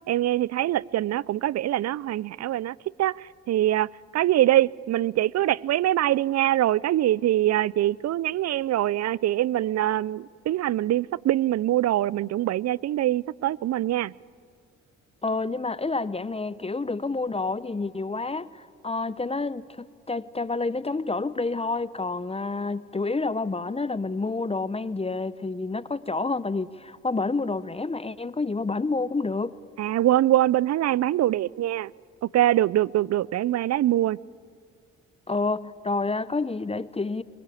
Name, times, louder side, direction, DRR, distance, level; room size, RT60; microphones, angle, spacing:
voice 1, 0.1-3.9 4.1-14.1 29.8-31.9 32.2-34.2, right 13 dB, 55° right, 0.5 m, -23 dB
voice 2, 15.2-29.6 35.3-37.2, left 3 dB, 20° left, 0.8 m, -29 dB
23.0 x 19.5 x 8.5 m
supercardioid pair, 55°, 31 cm